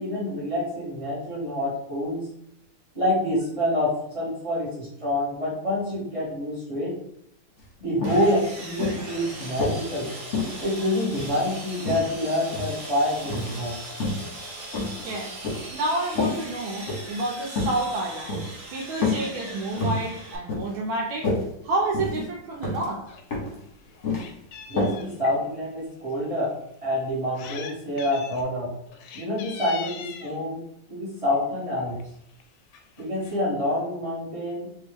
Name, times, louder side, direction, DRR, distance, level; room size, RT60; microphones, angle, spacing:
voice 1, 0.0-2.3 2.9-6.9 7.8-10.1 10.6-13.8 24.7-26.5 26.8-28.7 29.1-30.6 30.9-32.0 33.0-34.7, left 1 dB, 20° right, -7 dB, 1.2 m, -27 dB
sound 1, 7.6-7.7 8.0-8.3 8.8-9.8 10.3-11.4 11.8-12.8 13.2-13.6 13.9-14.3 14.7-15.7 16.2-16.4 16.8-17.1 17.5-17.8 18.3-18.5 19.0-19.3 19.6-20.1 20.5-20.8 21.1-21.4 21.9-22.3 22.6-22.9 23.3-23.6 23.8-24.3 24.8-25.0 25.3-25.4, left 2 dB, 45° left, 1.1 m, -28 dB
Sawing, 8.0-20.4, right 1 dB, 50° right, 1.0 m, -39 dB
voice 2, 15.0-18.4 18.7-21.3 21.6-23.0, right 2 dB, 80° right, 0 dB, 1.4 m, -29 dB
Meow, 23.1-23.2 23.6-25.4 26.1-26.2 27.1-27.7 28.0-28.5 28.9-30.4 31.3-31.6 32.0-32.1 32.3-32.4 32.7-33.4, left 6 dB, 75° left, 1.3 m, -41 dB
3.3 x 2.9 x 3.4 m, 0.75 s
omnidirectional pair, 2.3 m